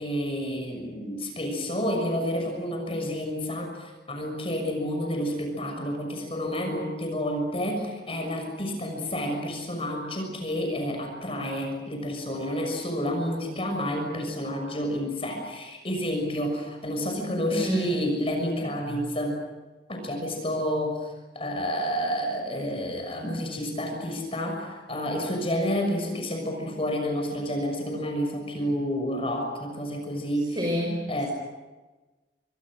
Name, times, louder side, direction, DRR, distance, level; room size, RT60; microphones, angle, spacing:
voice 1, 0.0-19.4 19.9-30.6 31.1-31.3, equal, 35° left, 2 dB, 6.5 m, -30 dB
voice 2, 17.5-18.0 30.3-31.3, equal, 25° right, 0 dB, 5.3 m, -29 dB
29.0 x 26.0 x 6.5 m, 1.2 s
head